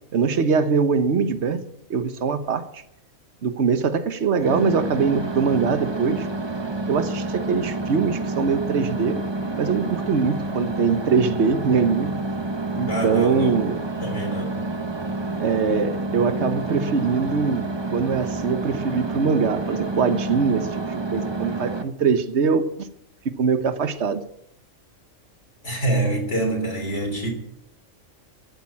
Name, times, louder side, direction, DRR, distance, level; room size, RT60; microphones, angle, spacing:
voice 1, 0.1-1.6 1.9-2.8 3.4-6.3 6.9-9.2 9.6-12.2 12.8-13.8 15.4-17.6 17.9-22.9 23.4-24.2, right 5 dB, 55° right, 1.4 m, -22 dB
sound 1, 4.4-21.8, right 2 dB, 20° right, 1.1 m, -29 dB
voice 2, 12.9-13.6 14.0-14.7 25.6-27.3, right 1 dB, 55° left, 3.8 m, -26 dB
15.0 x 8.8 x 8.5 m
omnidirectional pair, 1.4 m